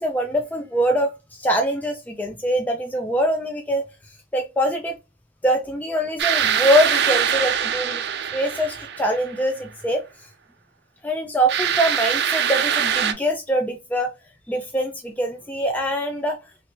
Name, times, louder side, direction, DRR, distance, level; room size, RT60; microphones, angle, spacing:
voice 1, 0.0-3.8 4.3-5.0 5.4-8.0 8.3-10.3 11.0-14.1 14.5-16.4, equal, 10° left, 3 dB, 0.3 m, -23 dB
sound 1, 6.2-9.4 11.5-13.1, right 8 dB, 65° right, 0.4 m, -23 dB
3.1 x 2.7 x 2.8 m, 0.27 s
head